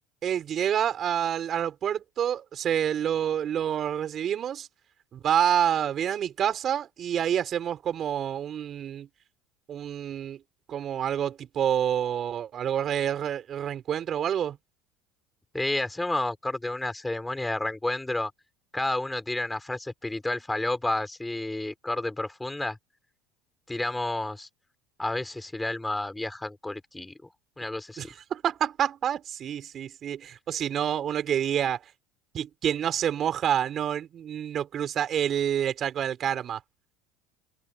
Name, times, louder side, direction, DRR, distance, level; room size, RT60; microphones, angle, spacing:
voice 1, 0.2-4.7 5.1-9.1 9.7-10.4 10.7-14.6 28.0-31.8 32.3-36.6, right 9 dB, 45° right, 4.9 m, -28 dB
voice 2, 15.5-18.3 18.7-22.8 23.7-24.5 25.0-27.1 27.6-28.0, left 2 dB, 10° left, 3.2 m, -30 dB
open air
supercardioid pair, 100°, 0 cm